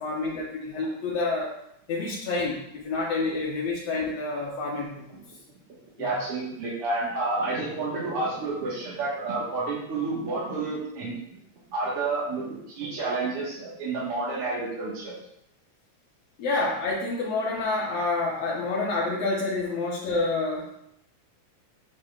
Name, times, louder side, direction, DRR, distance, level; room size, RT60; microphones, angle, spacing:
voice 1, 0.0-1.5 1.9-5.2 6.0-6.1 16.4-20.7, left 3 dB, 65° left, -6 dB, 2.0 m, -28 dB
voice 2, 6.0-11.4 11.7-15.1, right 3 dB, 55° right, -8 dB, 2.2 m, -30 dB
8.8 x 6.1 x 2.4 m, 0.76 s
omnidirectional pair, 3.3 m